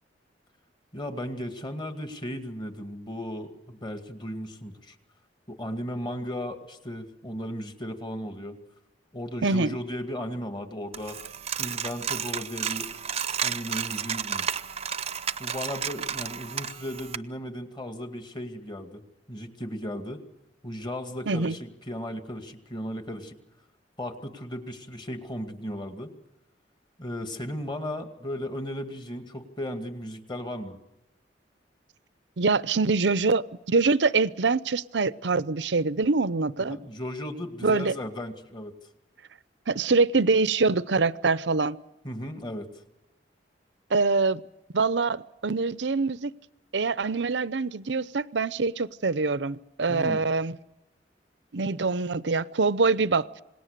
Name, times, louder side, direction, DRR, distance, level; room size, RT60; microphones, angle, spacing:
voice 1, 0.9-5.0 5.5-8.6 9.1-11.2 11.6-12.9 13.4-14.6 15.4-19.0 19.3-20.2 20.6-23.4 24.0-26.1 27.0-30.8 36.7-38.8 42.0-42.7 49.9-50.2, equal, 25° left, 6 dB, 2.2 m, -36 dB
voice 2, 9.4-9.8 21.3-21.6 32.4-36.8 37.6-37.9 39.7-41.8 43.9-44.4 44.7-46.3 46.7-50.5 51.5-53.3, right 4 dB, 80° right, 17 dB, 0.7 m, -24 dB
Coin (dropping), 10.9-17.2, right 7 dB, 35° right, 0.7 m, -32 dB
27.5 x 19.5 x 6.7 m, 0.95 s
head